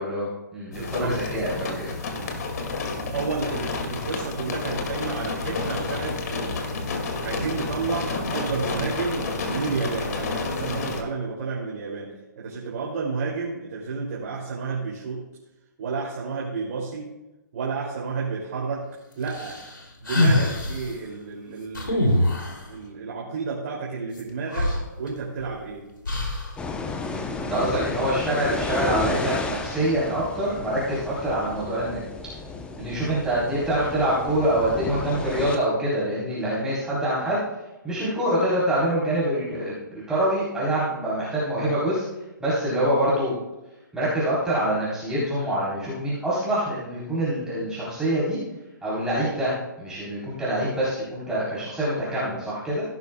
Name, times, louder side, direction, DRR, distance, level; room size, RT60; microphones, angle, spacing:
voice 1, 0.0-2.3 27.1-27.2 27.5-32.0 32.8-37.4 37.8-42.0 42.4-43.3 43.9-48.4 48.8-52.8, right 1 dB, 5° right, -10 dB, 3.7 m, -25 dB
sound 1, 0.7-11.0, left 3 dB, 55° left, 2.3 m, -30 dB
voice 2, 0.7-1.2 3.1-6.7 7.2-15.3 15.8-17.1 17.5-19.6 20.0-25.9 27.6-27.9, right 4 dB, 50° right, -4 dB, 2.8 m, -31 dB
sound 2, 19.3-20.9 21.7-22.7 24.2-24.3 24.5-25.5 26.0-26.6, left 1 dB, 85° left, 2.9 m, -24 dB
sound 3, 26.6-35.6, left 3 dB, 10° left, 0.8 m, -33 dB
16.5 x 12.0 x 2.3 m, 1.0 s
hypercardioid pair, 135°, 11 cm